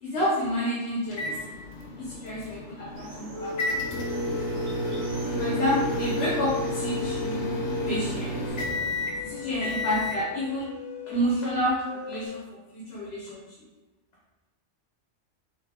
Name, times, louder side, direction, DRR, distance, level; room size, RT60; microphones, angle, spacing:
voice 1, 0.0-1.6 1.9-3.7 5.4-7.5 7.8-8.4 9.2-10.7 11.0-12.4 12.7-13.5, equal, 60° left, -5 dB, 1.1 m, -29 dB
sound 1, 1.1-10.2, equal, 80° left, 1.0 m, -32 dB
sound 2, 3.0-8.5, right 3 dB, 75° right, 1.1 m, -43 dB
sound 3, 3.3-11.5 11.8-12.3, left 6 dB, 30° left, 0.3 m, -36 dB
3.7 x 3.1 x 3.4 m, 1.2 s
omnidirectional pair, 1.2 m